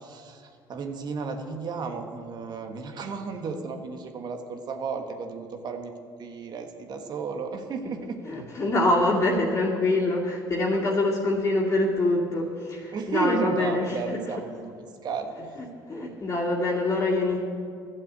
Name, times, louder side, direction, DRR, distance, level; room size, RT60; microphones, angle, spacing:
voice 1, 0.0-8.2 12.9-14.7 15.0-15.3, right 4 dB, 50° right, 5 dB, 1.4 m, -33 dB
voice 2, 8.3-14.2 15.9-17.4, left 2 dB, 35° left, -5 dB, 2.4 m, -25 dB
12.5 x 7.5 x 8.3 m, 2.3 s
supercardioid pair, 80°, 9 cm